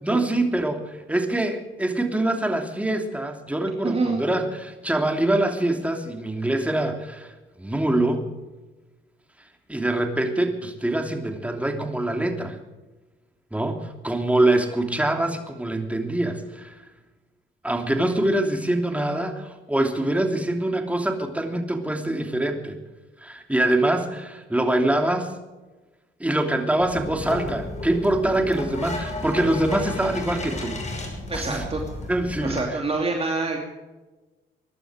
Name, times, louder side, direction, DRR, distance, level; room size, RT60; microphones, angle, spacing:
voice 1, 0.0-7.3 7.6-8.3 9.7-12.6 13.5-16.7 17.6-22.8 23.2-25.3 26.2-30.8 31.3-31.6 32.1-32.6, right 1 dB, 5° right, 4 dB, 3.0 m, -24 dB
voice 2, 3.8-4.3 31.3-31.8 32.4-33.6, right 3 dB, 30° right, 1 dB, 2.7 m, -26 dB
sound 1, 26.8-32.6, left 2 dB, 35° left, 5.9 m, -33 dB
22.5 x 12.0 x 5.1 m, 1.2 s
cardioid pair, 90°, 20 cm